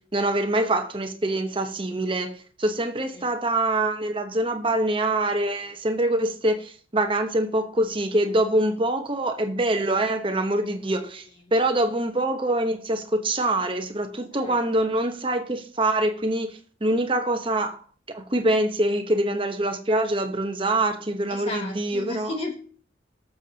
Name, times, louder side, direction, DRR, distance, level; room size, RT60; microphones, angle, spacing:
voice 1, 0.1-11.2 11.5-17.8 18.1-22.4, right 1 dB, 30° right, 1.0 m, -24 dB
voice 2, 21.3-22.5, left 2 dB, 30° left, 2.2 m, -34 dB
19.0 x 7.2 x 2.8 m
head